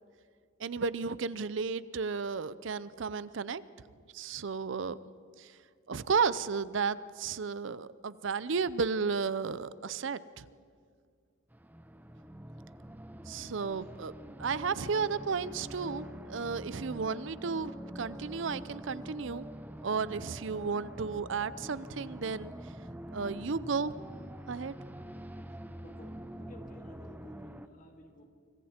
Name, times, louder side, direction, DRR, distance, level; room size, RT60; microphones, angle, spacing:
voice 1, 0.6-3.6 4.1-5.0 5.4-5.5 5.9-10.4 13.3-14.1 14.4-19.5 19.8-22.5 23.1-23.9 24.5-24.7, right 5 dB, 65° right, 17 dB, 0.5 m, -33 dB
sound 1, 11.5-27.7, equal, 10° right, 0.7 m, -45 dB
voice 2, 26.4-28.3, equal, 40° left, 3 dB, 2.4 m, -54 dB
25.5 x 24.5 x 4.4 m, 2.1 s
head